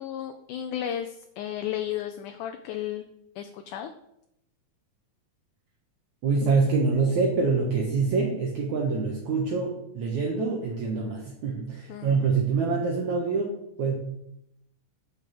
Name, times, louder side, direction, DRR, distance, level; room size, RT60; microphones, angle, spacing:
voice 1, 0.0-3.1 3.4-3.9 11.9-12.4, left 10 dB, 75° left, 6 dB, 2.0 m, -34 dB
voice 2, 6.2-14.0, right 4 dB, 65° right, -2 dB, 2.5 m, -25 dB
8.8 x 6.4 x 7.6 m, 0.79 s
omnidirectional pair, 4.0 m